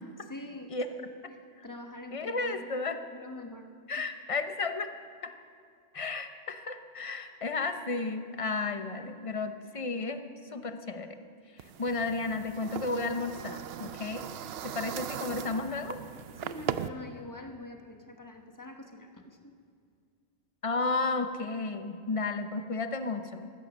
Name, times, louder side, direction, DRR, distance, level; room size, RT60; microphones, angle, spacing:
voice 1, 0.2-1.4 1.6-2.8 3.1-3.7 14.9-15.4 16.4-19.5, left 2 dB, 15° left, 3 dB, 1.2 m, -45 dB
voice 2, 2.1-3.0 3.9-4.9 5.2-5.3 5.9-11.2 11.8-14.3 14.6-16.0 20.6-23.5, left 3 dB, 30° left, 8 dB, 0.8 m, -33 dB
sound 1, 11.6-16.9, right 10 dB, 65° right, 0.7 m, -39 dB
14.5 x 14.0 x 6.2 m, 2.2 s
omnidirectional pair, 1.2 m